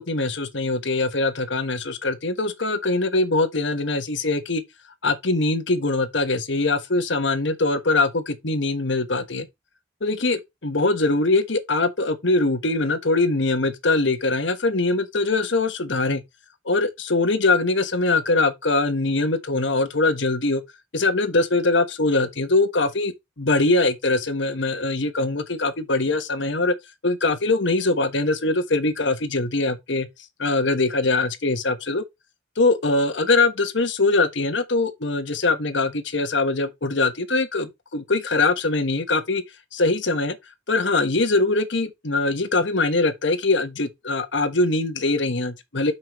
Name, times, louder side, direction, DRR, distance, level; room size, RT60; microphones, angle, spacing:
voice 1, 0.0-4.6 5.0-9.5 10.0-16.2 16.6-20.6 20.9-26.7 27.0-30.1 30.4-32.0 32.6-39.4 39.7-40.4 40.7-45.9, left 2 dB, 65° left, 1.4 m, -22 dB
8.1 x 5.8 x 3.1 m
head